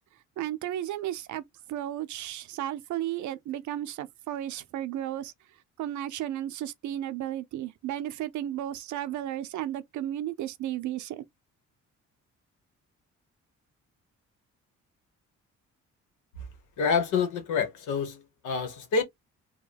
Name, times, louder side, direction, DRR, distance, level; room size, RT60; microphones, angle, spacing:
voice 1, 0.4-1.4 1.7-5.3 5.8-11.2, right 12 dB, 70° right, 0.6 m, -34 dB
voice 2, 16.8-19.0, left 5 dB, 90° left, 1.3 m, -27 dB
3.7 x 2.3 x 3.4 m
cardioid pair, 90°, 30 cm